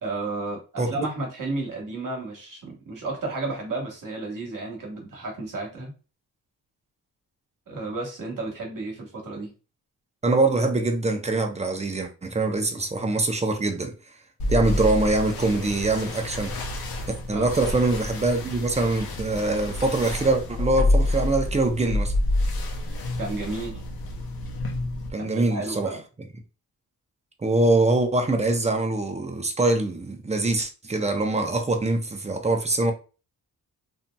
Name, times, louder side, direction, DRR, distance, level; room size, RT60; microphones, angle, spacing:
voice 1, 0.0-5.9 7.7-9.5 17.3-17.5 23.2-23.8 25.2-26.0, right 2 dB, 55° right, 1.2 m, -32 dB
voice 2, 0.8-1.1 10.2-14.2 14.5-16.6 17.3-22.1 25.1-26.3 27.4-32.9, right 2 dB, 15° right, 0.5 m, -24 dB
sound 1, 14.4-25.1, left 1 dB, 65° left, 0.8 m, -28 dB
2.7 x 2.6 x 2.2 m
cardioid pair, 80°, 39 cm